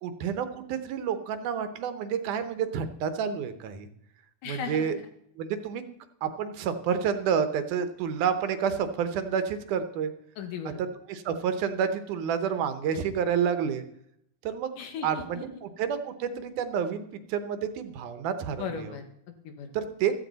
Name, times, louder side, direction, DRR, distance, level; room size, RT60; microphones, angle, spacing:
voice 1, 0.0-3.9 4.4-5.0 5.4-5.8 6.2-10.1 11.1-13.8 14.4-14.8 15.0-18.9 19.7-20.1, right 7 dB, 75° right, 10 dB, 2.4 m, -29 dB
voice 2, 4.4-5.1 10.4-10.8 14.8-15.4 18.6-19.7, left 6 dB, 80° left, 5 dB, 3.1 m, -37 dB
15.5 x 14.0 x 4.0 m, 0.74 s
omnidirectional pair, 3.7 m